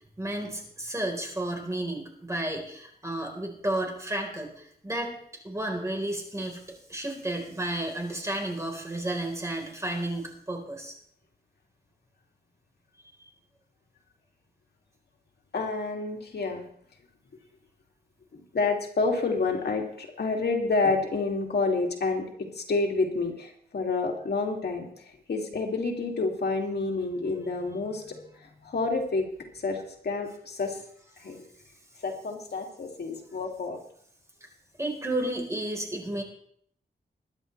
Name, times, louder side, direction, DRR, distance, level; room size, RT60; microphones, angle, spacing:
voice 1, 0.2-5.1 5.4-10.9 34.8-36.2, right 1 dB, 15° right, 1 dB, 4.0 m, -32 dB
voice 2, 15.5-16.6 18.3-29.3 29.5-30.8 31.2-31.4 32.0-33.8, left 3 dB, 70° left, 1 dB, 2.4 m, -29 dB
22.5 x 10.5 x 3.3 m, 0.65 s
wide cardioid pair, 115°, 17 cm